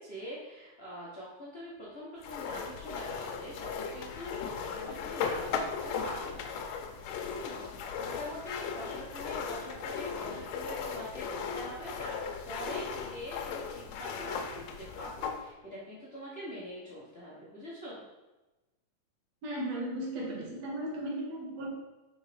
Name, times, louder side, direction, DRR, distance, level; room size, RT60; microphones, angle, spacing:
voice 1, 0.0-6.5 7.3-18.0, equal, 55° left, -7 dB, 0.6 m, -44 dB
sound 1, 2.2-15.4, left 6 dB, 80° left, 1.8 m, -37 dB
voice 2, 19.4-21.7, right 1 dB, 65° right, -2 dB, 2.5 m, -36 dB
5.2 x 4.7 x 5.0 m, 1.1 s
omnidirectional pair, 3.3 m